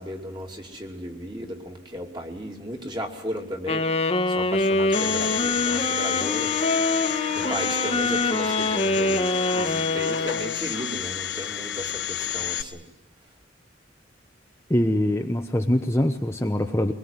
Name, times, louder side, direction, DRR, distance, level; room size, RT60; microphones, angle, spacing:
voice 1, 0.0-6.6 7.3-12.9, equal, 25° right, 2 dB, 2.9 m, -35 dB
Wind instrument woodwind instrument, 3.7-10.6, left 2 dB, 35° left, 1.3 m, -25 dB
Domestic sounds home sounds, 4.9-12.6, left 10 dB, 70° left, 1.3 m, -30 dB
voice 2, 14.7-16.9, left 1 dB, 15° left, 4 dB, 0.9 m, -23 dB
23.0 x 21.5 x 9.7 m, 0.93 s
head